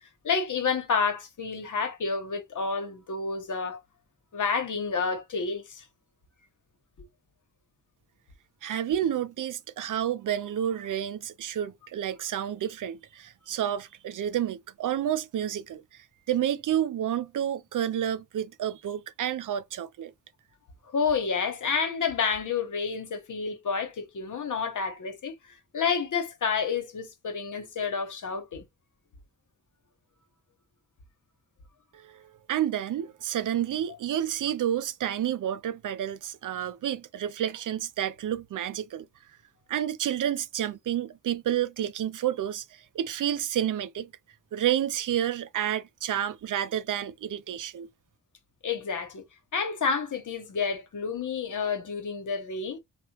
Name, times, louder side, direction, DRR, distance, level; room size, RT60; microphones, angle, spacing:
voice 1, 0.2-3.8 4.3-5.8 20.9-28.7 48.6-49.2 49.5-52.8, left 5 dB, 65° left, 1.0 m, -29 dB
voice 2, 8.6-20.1 31.9-39.1 39.7-44.1 44.5-47.9, right 10 dB, 70° right, 0.5 m, -30 dB
3.4 x 2.2 x 2.9 m
cardioid pair, 70°, 32 cm